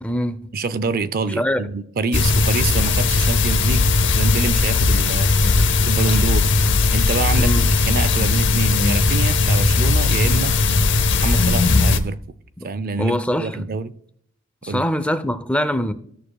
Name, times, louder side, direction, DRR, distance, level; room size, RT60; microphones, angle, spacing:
voice 1, 0.0-0.5 1.4-1.6 7.4-7.7 12.6-12.7 13.0-13.7 14.6-15.9, equal, 5° left, 0.5 m, -23 dB
voice 2, 0.5-3.9 4.1-5.3 5.8-6.5 6.9-7.5 7.9-10.6 11.2-12.2 12.6-13.9 14.7-14.9, right 4 dB, 45° right, 0.5 m, -26 dB
sound 1, 2.1-12.0, left 3 dB, 60° left, 0.7 m, -18 dB
16.0 x 6.7 x 2.2 m
head